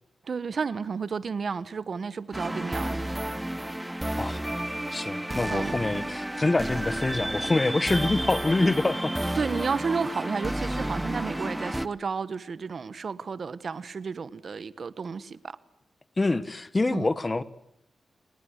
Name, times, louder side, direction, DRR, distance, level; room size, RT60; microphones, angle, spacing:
voice 1, 0.2-3.0 5.5-6.1 9.3-15.6 16.9-17.1, right 5 dB, 55° right, 1.2 m, -32 dB
sound 1, 2.3-11.9, right 1 dB, 10° right, 1.1 m, -31 dB
voice 2, 4.9-9.1 16.2-17.4, left 2 dB, 25° left, 1.4 m, -26 dB
30.0 x 20.5 x 8.1 m
cardioid pair, 85°, 0 cm